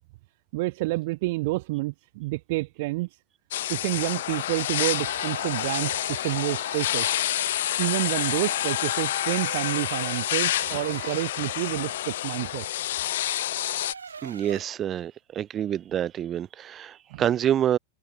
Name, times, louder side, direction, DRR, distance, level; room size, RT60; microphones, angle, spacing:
voice 1, 0.5-3.2 3.7-7.2 7.8-12.6 17.1-17.2, right 22 dB, 50° right, 2.5 m, -29 dB
sound 1, 3.5-13.9, left 13 dB, 60° left, 2.9 m, -28 dB
sound 2, 4.8-11.3 13.4-14.6, right 5 dB, 75° right, 4.2 m, -42 dB
voice 2, 14.2-17.8, right 10 dB, 25° right, 6.5 m, -27 dB
figure-of-eight pair, 90°, 0 cm